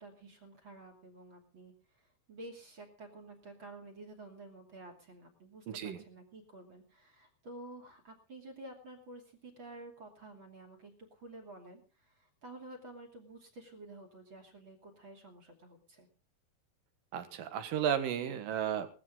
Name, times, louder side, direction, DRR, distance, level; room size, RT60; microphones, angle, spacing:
voice 1, 0.0-1.7 2.3-11.8 12.2-16.1, right 2 dB, 35° right, 4 dB, 3.0 m, -51 dB
voice 2, 5.7-6.0 17.1-18.9, right 9 dB, 70° right, 10 dB, 3.0 m, -33 dB
18.5 x 14.0 x 3.8 m, 0.35 s
omnidirectional pair, 4.3 m